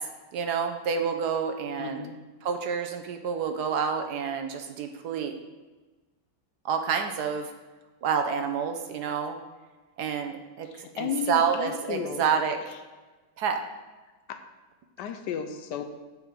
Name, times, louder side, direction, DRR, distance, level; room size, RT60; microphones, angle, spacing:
voice 1, 0.3-2.0 2.4-5.4 6.6-7.5 8.0-9.4 10.0-10.7 10.9-12.6 13.4-13.6, right 6 dB, 70° right, 6 dB, 1.1 m, -28 dB
voice 2, 1.8-2.2 10.6-12.3 14.3-14.4 15.0-15.8, left 7 dB, 75° left, 7 dB, 1.1 m, -33 dB
7.3 x 5.4 x 4.5 m, 1.2 s
omnidirectional pair, 2.0 m